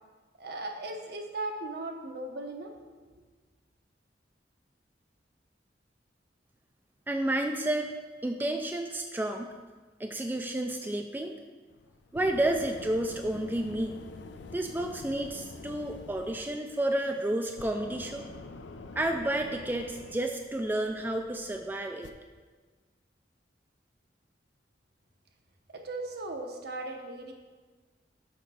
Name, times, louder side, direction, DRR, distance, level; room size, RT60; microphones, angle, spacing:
voice 1, 0.4-3.1 25.7-27.3, right 2 dB, 65° right, 3 dB, 1.0 m, -38 dB
voice 2, 7.1-7.9 8.2-9.5 10.0-11.3 12.1-14.0 14.5-18.2 19.0-22.1, right 1 dB, 10° right, 4 dB, 0.3 m, -31 dB
sound 1, 11.7-22.1, left 3 dB, 80° left, 0.5 m, -47 dB
6.5 x 5.1 x 5.5 m, 1.4 s
head